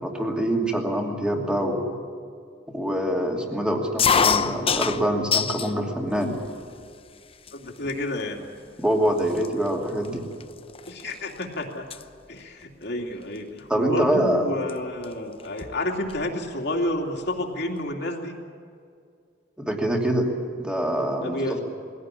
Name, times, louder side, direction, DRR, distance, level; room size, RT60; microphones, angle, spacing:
voice 1, 0.0-1.9 2.7-6.4 8.8-10.3 13.7-14.4 19.6-20.3 20.6-21.6, right 1 dB, 5° right, 1 dB, 2.7 m, -25 dB
sound 1, 4.0-5.7 6.2-6.8 7.5-7.6 7.8-8.2 8.9-9.0 9.2-11.4 11.7-12.0 13.4-13.6 14.7-14.8 15.0-15.1 15.4-16.3, left 6 dB, 30° left, 0.7 m, -25 dB
voice 2, 7.5-8.4 10.9-11.9 12.3-18.4 21.2-21.6, left 1 dB, 65° left, 1 dB, 2.8 m, -30 dB
21.0 x 17.0 x 9.9 m, 2.3 s
head